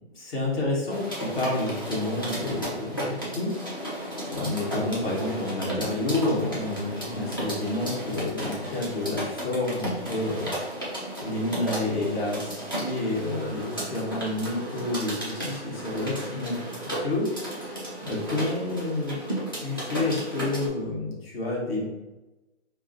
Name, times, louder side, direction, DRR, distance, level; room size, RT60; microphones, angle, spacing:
voice 1, 0.1-3.5 4.3-10.9 11.2-16.5 17.0-17.3 17.6-19.2 19.5-21.8, left 2 dB, 60° left, -4 dB, 1.3 m, -29 dB
sound 1, 0.9-20.7, right 1 dB, 20° left, 0.3 m, -34 dB
4.5 x 2.0 x 2.6 m, 1.1 s
hypercardioid pair, 155°, 35 cm